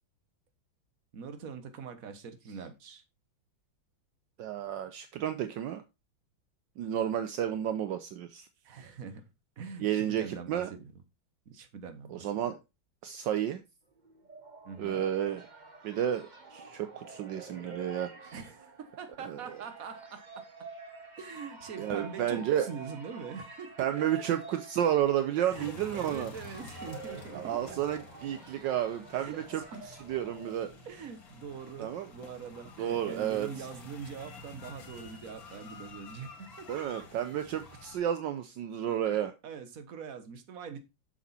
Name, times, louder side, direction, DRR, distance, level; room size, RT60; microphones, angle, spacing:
voice 1, 1.1-3.0 8.6-9.2 9.6-10.9 11.4-12.3 14.6-15.0 18.3-20.4 21.2-24.2 25.4-27.8 29.1-29.8 30.8-36.3 36.6-36.8 38.9-39.2 39.4-40.8, right 6 dB, 50° right, 9 dB, 1.6 m, -43 dB
voice 2, 4.4-5.8 6.8-8.5 9.8-10.7 12.1-12.6 13.0-13.6 14.8-15.5 15.8-18.3 19.3-19.4 21.8-22.7 23.8-26.3 27.3-30.7 31.8-32.1 32.8-33.5 36.7-39.3, right 10 dB, 75° right, 9 dB, 1.3 m, -31 dB
sound 1, 14.0-31.0, right 4 dB, 25° right, 1.2 m, -49 dB
sound 2, 25.5-38.0, left 3 dB, 75° left, 2.9 m, -50 dB
7.3 x 7.0 x 4.2 m, 0.25 s
omnidirectional pair, 2.1 m